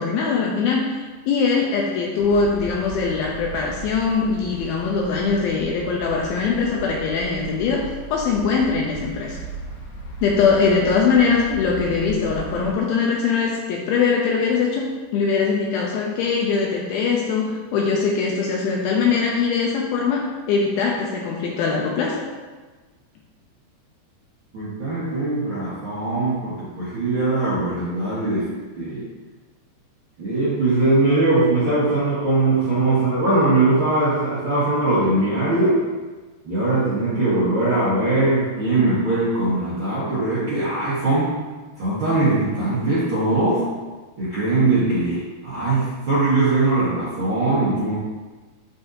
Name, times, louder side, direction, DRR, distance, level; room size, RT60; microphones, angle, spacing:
voice 1, 0.0-9.4 10.2-22.2, left 5 dB, 80° left, -1 dB, 2.2 m, -22 dB
sound 1, 2.2-12.7, right 3 dB, 60° left, 3.8 m, -36 dB
voice 2, 24.5-28.5 28.7-29.0 30.2-35.7 36.4-41.3 41.8-43.7 44.2-48.0, right 2 dB, 80° right, -11 dB, 1.1 m, -21 dB
12.0 x 4.0 x 2.7 m, 1.3 s
omnidirectional pair, 4.8 m